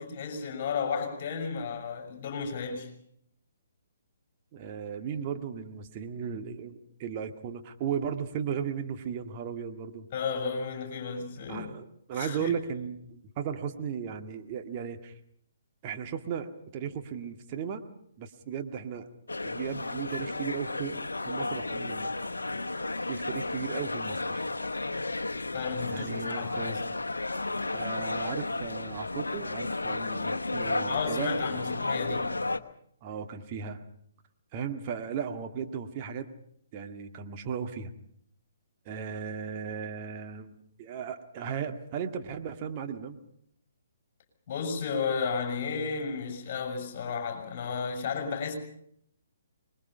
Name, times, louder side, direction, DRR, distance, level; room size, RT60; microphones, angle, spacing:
voice 1, 0.0-2.9 10.1-11.7 12.1-12.5 25.5-26.8 30.9-32.4 44.5-48.6, left 5 dB, 40° left, 4 dB, 6.7 m, -33 dB
voice 2, 4.5-10.1 11.5-15.2 15.8-17.8 18.2-19.1 19.4-21.0 21.3-22.1 23.1-24.4 25.9-26.8 27.7-31.7 33.0-33.8 34.5-36.3 36.7-37.9 38.9-40.5 40.8-43.2, right 7 dB, 30° right, 5 dB, 2.0 m, -36 dB
sound 1, 19.3-32.6, left 2 dB, 75° left, 1.1 m, -33 dB
26.0 x 21.5 x 5.7 m, 0.68 s
figure-of-eight pair, 130°, 0 cm